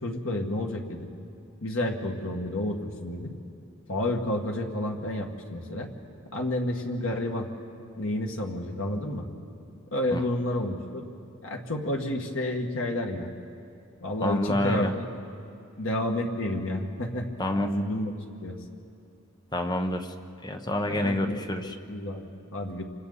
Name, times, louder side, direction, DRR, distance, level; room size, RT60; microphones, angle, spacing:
voice 1, 0.0-1.1 1.6-3.3 3.9-5.9 6.3-7.5 8.0-9.3 9.9-11.1 11.4-13.3 14.0-15.1 15.8-17.3 17.6-18.1 18.4-18.6 20.9-22.8, left 1 dB, 80° left, 2 dB, 2.0 m, -30 dB
voice 2, 14.2-14.9 17.4-17.7 19.5-20.1 20.4-21.8, left 1 dB, 20° left, 6 dB, 0.9 m, -28 dB
28.0 x 26.0 x 4.2 m, 2.5 s
head